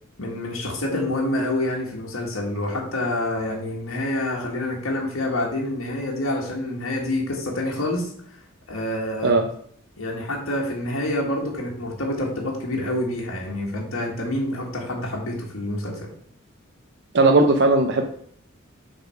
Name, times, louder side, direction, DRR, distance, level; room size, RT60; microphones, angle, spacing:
voice 1, 0.2-8.4 8.7-9.3 10.0-16.1, left 1 dB, 75° left, -2 dB, 1.7 m, -27 dB
voice 2, 17.1-18.0, right 2 dB, 55° right, 4 dB, 0.7 m, -17 dB
6.8 x 4.1 x 5.7 m, 0.63 s
head